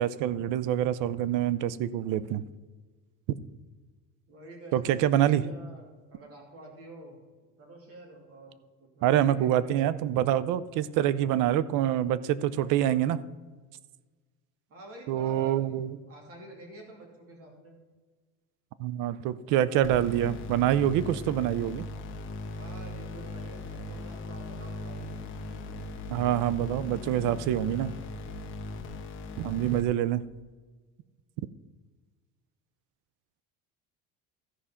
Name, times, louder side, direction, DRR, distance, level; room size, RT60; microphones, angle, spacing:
voice 1, 0.0-2.4 4.7-5.4 9.0-13.2 15.1-16.0 18.8-21.9 26.1-27.9 29.4-30.2, right 11 dB, 60° right, 17 dB, 0.6 m, -26 dB
voice 2, 4.3-7.2 7.6-10.0 14.7-15.8 16.1-17.8 22.5-25.5, right 1 dB, 40° right, 1 dB, 2.8 m, -48 dB
sound 1, 19.8-29.8, left 2 dB, 35° left, 1.2 m, -39 dB
14.0 x 5.0 x 5.6 m, 1.3 s
cardioid pair, 150°, 35 cm